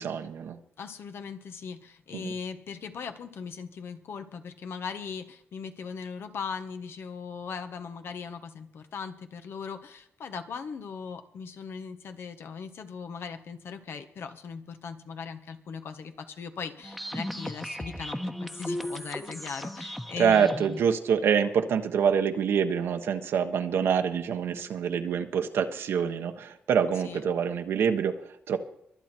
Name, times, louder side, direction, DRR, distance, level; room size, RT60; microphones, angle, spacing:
voice 1, 0.0-0.6 2.1-2.3 20.2-28.6, right 7 dB, 80° right, 5 dB, 1.3 m, -26 dB
voice 2, 0.8-20.6 27.0-27.2, left 6 dB, 70° left, 8 dB, 1.5 m, -39 dB
sound 1, 16.8-20.8, equal, 5° left, 1.2 m, -36 dB
23.5 x 8.1 x 4.5 m, 0.72 s
cardioid pair, 75°, 4 cm